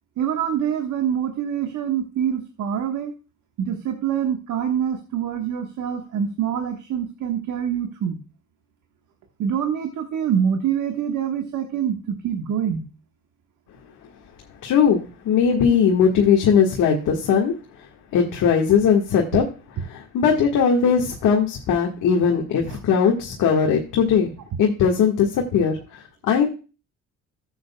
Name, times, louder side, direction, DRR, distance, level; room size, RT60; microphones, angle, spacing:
voice 1, 0.2-3.1 3.6-8.2 9.4-12.8 15.7-15.8, right 8 dB, 70° right, 4 dB, 1.4 m, -25 dB
voice 2, 14.6-19.4 19.8-24.3 24.6-26.5, left 7 dB, 75° left, 0 dB, 1.7 m, -19 dB
13.5 x 7.9 x 2.3 m, 0.34 s
cardioid pair, 80°, 31 cm